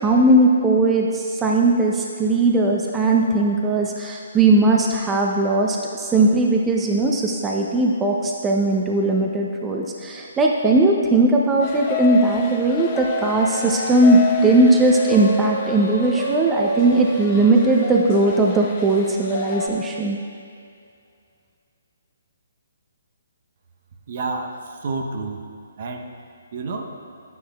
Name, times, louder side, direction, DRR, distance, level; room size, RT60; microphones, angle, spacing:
voice 1, 0.0-20.2, right 2 dB, 15° right, -1 dB, 0.6 m, -18 dB
sound 1, 11.6-19.7, left 3 dB, 35° left, 1.0 m, -28 dB
voice 2, 24.1-25.4 25.8-26.1 26.5-27.0, right 3 dB, 50° right, 3 dB, 0.8 m, -29 dB
11.0 x 9.3 x 2.3 m, 2.3 s
figure-of-eight pair, 140°, 0 cm